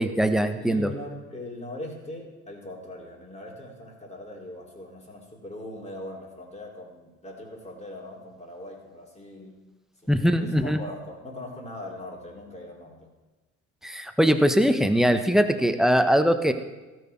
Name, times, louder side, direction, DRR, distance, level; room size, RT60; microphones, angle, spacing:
voice 1, 0.0-0.9 10.1-10.8 13.8-16.5, equal, ahead, 9 dB, 1.0 m, -21 dB
voice 2, 0.6-9.6 10.0-13.1, left 1 dB, 15° left, -1 dB, 3.7 m, -40 dB
17.5 x 6.2 x 4.6 m, 1.2 s
figure-of-eight pair, 55°, 39 cm